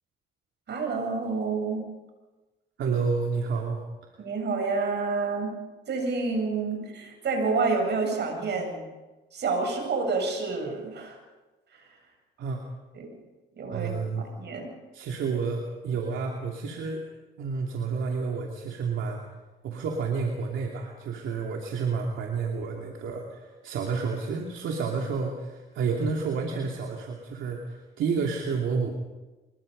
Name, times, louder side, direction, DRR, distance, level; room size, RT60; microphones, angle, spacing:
voice 1, 0.7-1.8 4.2-5.5 5.9-8.9 9.3-11.2 11.7-11.9 12.9-13.1 13.6-14.7, right 4 dB, 60° right, 3 dB, 8.0 m, -29 dB
voice 2, 2.8-3.8 12.4-12.6 13.7-14.3 14.9-17.0 17.4-19.2 19.6-28.9, right 5 dB, 75° right, 1 dB, 2.9 m, -30 dB
25.5 x 22.0 x 5.4 m, 1.2 s
cardioid pair, 90°, 20 cm